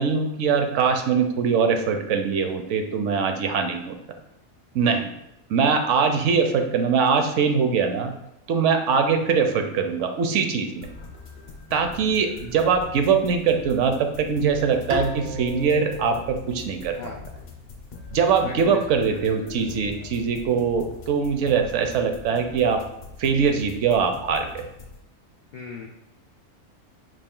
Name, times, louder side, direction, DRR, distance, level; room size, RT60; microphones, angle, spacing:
voice 1, 0.0-4.0 4.7-5.1 5.5-8.1 8.5-10.9 11.7-17.0 18.1-22.8 23.2-24.7, right 6 dB, 70° right, 5 dB, 0.9 m, -22 dB
sound 1, 10.8-25.0, left 4 dB, 50° left, 0.9 m, -42 dB
Bowed string instrument, 14.9-18.1, right 2 dB, 45° right, 0.3 m, -35 dB
voice 2, 18.4-19.6 25.5-25.9, left 5 dB, 80° left, 0 dB, 0.4 m, -39 dB
5.1 x 2.4 x 3.7 m, 0.86 s
omnidirectional pair, 1.4 m